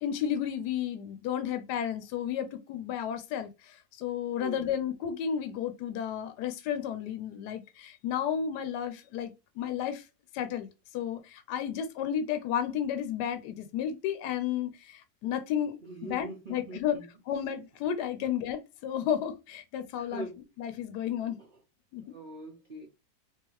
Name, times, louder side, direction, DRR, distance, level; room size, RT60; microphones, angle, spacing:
voice 1, 0.0-10.0 10.3-15.8 16.0-17.0 17.3-20.3 20.6-21.4 21.9-22.0, left 9 dB, 80° left, 1.1 m, -32 dB
voice 2, 4.3-4.7 15.8-17.1 18.2-18.3 20.0-20.4 21.4-21.5 22.0-22.9, right 2 dB, 50° right, 0.6 m, -43 dB
3.6 x 2.8 x 3.0 m
omnidirectional pair, 1.8 m